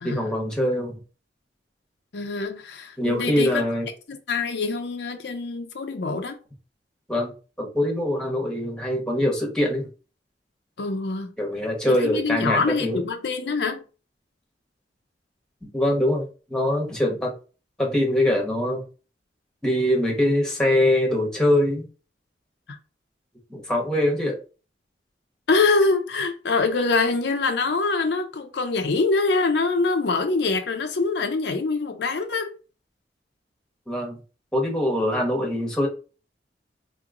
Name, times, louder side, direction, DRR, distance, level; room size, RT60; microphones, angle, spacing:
voice 1, 0.0-1.0 3.0-3.9 7.1-7.3 7.6-9.9 11.4-13.0 15.6-17.3 17.8-18.8 19.6-21.9 23.5-24.4 33.9-34.2 34.5-35.9, left 1 dB, 5° left, 1.1 m, -23 dB
voice 2, 2.1-3.6 4.1-6.4 10.8-11.3 11.9-13.8 22.7-22.8 25.5-32.5, left 3 dB, 70° left, 0.6 m, -24 dB
4.2 x 3.0 x 2.5 m
head